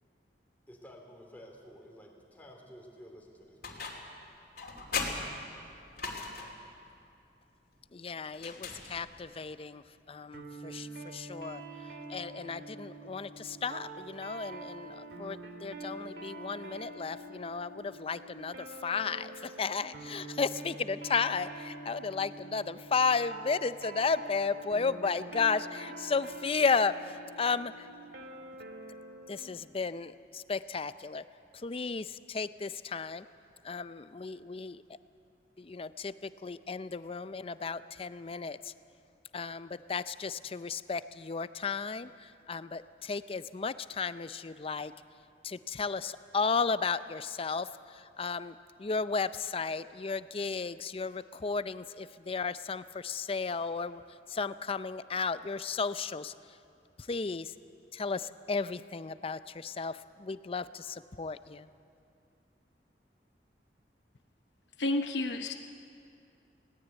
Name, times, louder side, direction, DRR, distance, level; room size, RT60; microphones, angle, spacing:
voice 1, 0.7-3.9, equal, 10° left, 0 dB, 3.2 m, -52 dB
sound 1, 3.6-4.2 4.6-6.7 8.3-9.3, left 4 dB, 60° left, 2.9 m, -38 dB
voice 2, 7.9-27.9 29.3-31.2 31.5-33.2 33.6-34.8 35.6-38.7 39.3-44.9 45.4-54.0 54.3-56.3 57.1-57.5 57.9-61.7, left 5 dB, 35° left, 14 dB, 0.5 m, -34 dB
sound 2, 10.3-29.5, right 2 dB, 70° right, 2.2 m, -46 dB
voice 3, 64.8-65.5, left 2 dB, 80° left, 5 dB, 0.8 m, -30 dB
20.0 x 18.0 x 8.1 m, 2.5 s
head